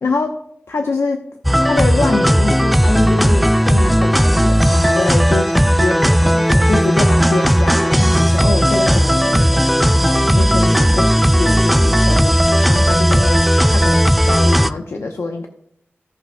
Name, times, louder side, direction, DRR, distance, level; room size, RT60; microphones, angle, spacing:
voice 1, 0.0-1.2 1.6-15.5, left 3 dB, 80° left, 3 dB, 0.8 m, -24 dB
sound 1, 1.4-14.7, equal, ahead, 0.4 m, -14 dB
16.0 x 5.4 x 2.2 m, 0.69 s
cardioid pair, 55°, 4 cm